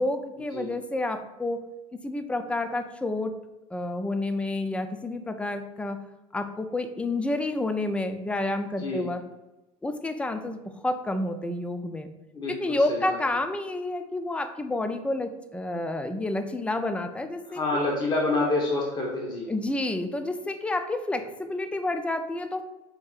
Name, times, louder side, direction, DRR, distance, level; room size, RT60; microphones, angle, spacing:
voice 1, 0.0-3.3 3.7-6.0 6.3-9.2 9.8-10.6 10.8-12.1 12.5-17.8 19.5-22.6, left 2 dB, 5° left, 8 dB, 0.4 m, -29 dB
voice 2, 12.3-13.2 17.5-19.5, left 2 dB, 25° left, -3 dB, 1.0 m, -28 dB
6.4 x 2.8 x 2.4 m, 0.99 s
hypercardioid pair, 75°, 18 cm